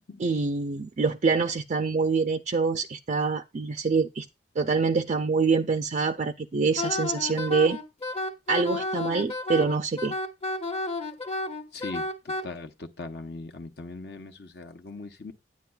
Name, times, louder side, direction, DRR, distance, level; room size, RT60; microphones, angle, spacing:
voice 1, 0.2-4.3 4.6-7.8 8.5-10.1, right 4 dB, 40° right, 0.4 m, -25 dB
Wind instrument woodwind instrument, 6.8-12.4, left 2 dB, 35° left, 0.8 m, -31 dB
voice 2, 11.7-12.0 12.4-15.3, left 3 dB, 65° left, 0.8 m, -39 dB
9.5 x 9.0 x 2.3 m
head